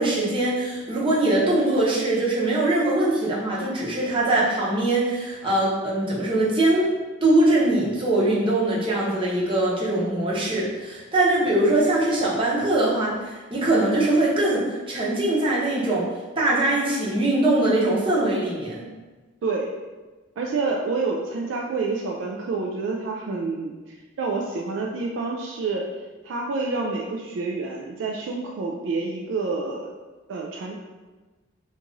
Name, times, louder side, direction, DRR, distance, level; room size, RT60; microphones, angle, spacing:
voice 1, 0.0-6.9 7.2-16.1 16.4-18.8, right 1 dB, 25° right, -6 dB, 0.8 m, -22 dB
voice 2, 19.4-19.7 20.4-25.9 26.2-29.9 30.3-30.8, right 3 dB, 60° right, 0 dB, 0.3 m, -28 dB
2.9 x 2.5 x 3.7 m, 1.3 s
head